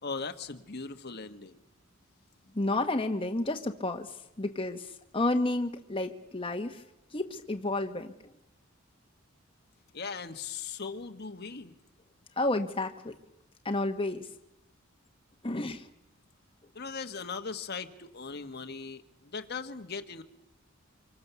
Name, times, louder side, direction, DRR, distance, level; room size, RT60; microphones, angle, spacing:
voice 1, 0.0-1.6 9.9-11.8 16.7-20.2, left 5 dB, 50° left, 6 dB, 1.4 m, -39 dB
voice 2, 2.5-4.1 4.4-4.9 5.1-6.8 7.1-8.1 12.4-13.1 13.6-14.3 15.4-15.8, left 2 dB, 25° left, 4 dB, 1.3 m, -30 dB
26.0 x 23.5 x 7.0 m, 0.87 s
head